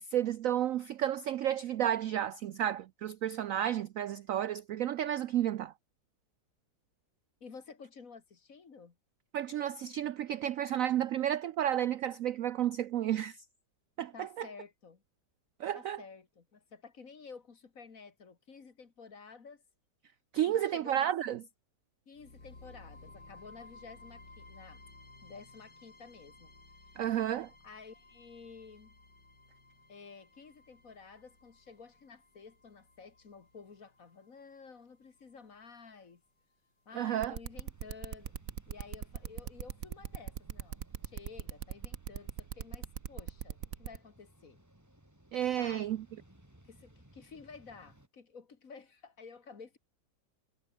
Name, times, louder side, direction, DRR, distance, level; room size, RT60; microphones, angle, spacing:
voice 1, 0.0-5.7 9.3-13.4 14.0-14.5 15.6-16.0 20.3-21.4 27.0-27.5 36.9-37.4 45.3-46.0, right 11 dB, 70° right, 0.8 m, -32 dB
voice 2, 7.4-9.0 14.1-15.0 15.7-19.6 20.4-21.1 22.1-24.8 25.2-26.5 27.6-29.0 29.9-36.2 36.9-38.3 38.7-44.6 45.6-45.9 46.6-49.8, left 5 dB, 45° left, 2.2 m, -52 dB
sound 1, 22.1-36.1, left 2 dB, 65° left, 6.4 m, -57 dB
sound 2, 37.2-44.0, right 9 dB, 55° right, 1.3 m, -40 dB
sound 3, 37.5-48.1, right 1 dB, 10° right, 4.0 m, -62 dB
omnidirectional pair, 2.0 m